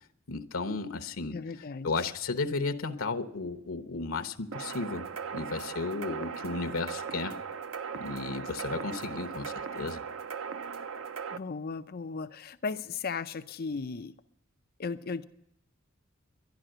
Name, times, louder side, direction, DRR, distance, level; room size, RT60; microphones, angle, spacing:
voice 1, 0.3-1.4 1.8-7.4 7.9-10.0, left 3 dB, 80° left, 9 dB, 0.9 m, -34 dB
voice 2, 1.3-1.9 11.3-14.1 14.8-15.2, left 4 dB, 45° left, 10 dB, 0.5 m, -36 dB
sound 1, 4.5-11.4, right 6 dB, 65° right, 0.6 m, -38 dB
11.5 x 11.5 x 7.8 m, 0.73 s
head